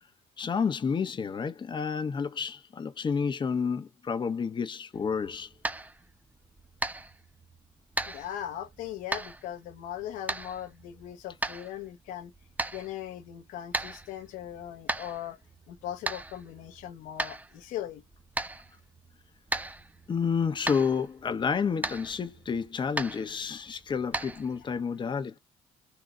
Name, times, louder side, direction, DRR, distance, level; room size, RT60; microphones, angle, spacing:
voice 1, 0.4-5.5 20.1-25.4, left 6 dB, 35° left, 0.9 m, -30 dB
sound 1, 4.9-24.8, right 2 dB, 10° right, 0.6 m, -38 dB
voice 2, 8.1-12.3 12.7-15.4 15.7-18.0, left 11 dB, 90° left, 1.1 m, -39 dB
3.8 x 2.8 x 4.8 m
cardioid pair, 90°, 14 cm